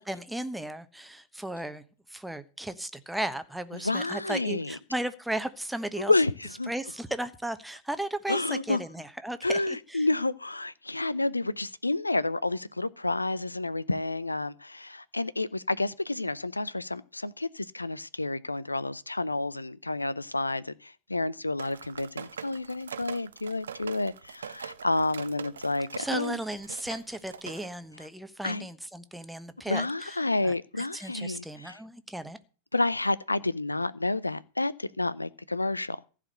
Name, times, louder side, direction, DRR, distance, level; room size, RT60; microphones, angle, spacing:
voice 1, 0.0-1.8 2.1-6.1 6.7-10.1 26.0-30.1 30.4-30.5 30.9-32.4, right 1 dB, 5° right, 1.1 m, -35 dB
voice 2, 3.7-4.8 6.0-6.7 8.3-8.8 9.4-26.4 28.4-28.7 29.7-31.8 32.7-36.1, left 2 dB, 85° left, 0.5 m, -30 dB
sound 1, 21.6-27.7, right 7 dB, 65° right, 0.7 m, -43 dB
15.0 x 5.0 x 7.8 m
figure-of-eight pair, 90°, 0 cm